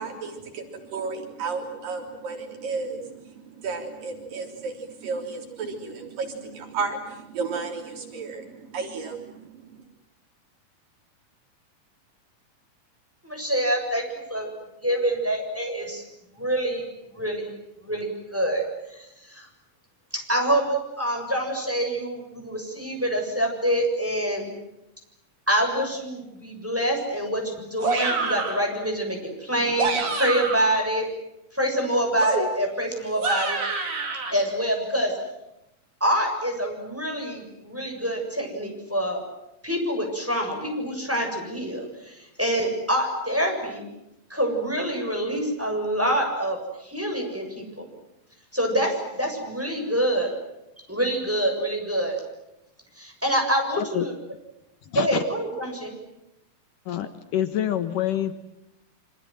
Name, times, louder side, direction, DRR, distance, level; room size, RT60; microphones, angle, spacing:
voice 1, 0.0-9.9, right 4 dB, 75° right, 3 dB, 5.1 m, -33 dB
voice 2, 13.2-14.5 14.8-16.0 16.3-17.5 17.8-18.6 18.9-19.5 20.1-24.5 25.5-31.1 31.5-33.6 34.3-35.2 36.0-39.2 39.6-43.8 44.3-47.9 48.5-50.3 50.8-52.2 53.0-54.1 54.9-55.9, right 1 dB, 5° right, 2 dB, 7.2 m, -26 dB
sound 1, 27.8-28.6 29.6-30.8 32.2-34.3, right 3 dB, 40° right, 4.5 m, -27 dB
voice 3, 56.9-58.3, left 10 dB, 70° left, 9 dB, 2.8 m, -26 dB
28.5 x 26.0 x 7.7 m, 0.88 s
omnidirectional pair, 4.0 m